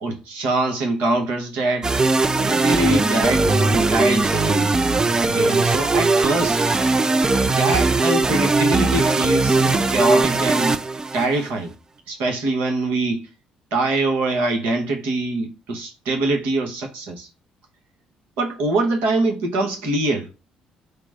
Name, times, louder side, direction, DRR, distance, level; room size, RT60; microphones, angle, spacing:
voice 1, 0.0-1.9 2.4-4.7 5.2-6.6 7.4-10.8 11.1-11.7 12.1-13.3 13.7-17.3 18.4-20.3, right 2 dB, 80° right, 1.1 m, -23 dB
sound 1, 1.8-11.5, right 3 dB, 25° right, 0.4 m, -19 dB
5.1 x 2.1 x 4.8 m
supercardioid pair, 65°, 3 cm